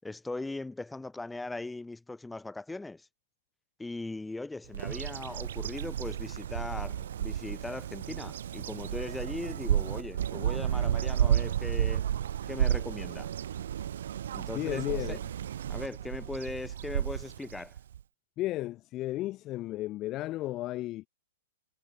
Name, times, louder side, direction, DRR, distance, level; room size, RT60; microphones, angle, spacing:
voice 1, 0.0-3.1 3.8-12.0 12.5-13.3 14.3-15.2 15.7-17.8, left 2 dB, 5° left, 4.6 m, -39 dB
Bird vocalization bird call bird song, 4.7-18.0, right 10 dB, 75° right, 3.0 m, -32 dB
voice 2, 14.5-15.2 18.4-21.1, left 16 dB, 30° left, 1.2 m, -34 dB
hypercardioid pair, 135°, 0 cm